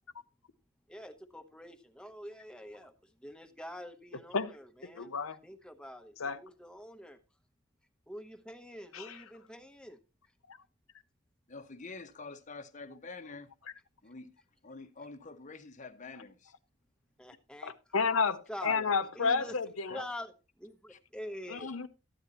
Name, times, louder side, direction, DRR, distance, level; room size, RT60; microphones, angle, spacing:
voice 1, 0.9-7.2 8.1-10.0 17.2-17.9 18.5-19.6 19.9-21.7, equal, 5° left, 1.0 m, -46 dB
voice 2, 4.9-5.4 6.2-6.4 8.9-9.1 17.6-20.0 21.5-21.9, left 5 dB, 80° left, 0.8 m, -31 dB
voice 3, 11.5-13.5 14.0-14.3 14.6-16.5 18.6-18.7 19.4-19.5 19.9-20.0 20.9-21.0 21.5-21.8, left 3 dB, 35° left, 0.9 m, -47 dB
13.5 x 9.6 x 3.0 m
head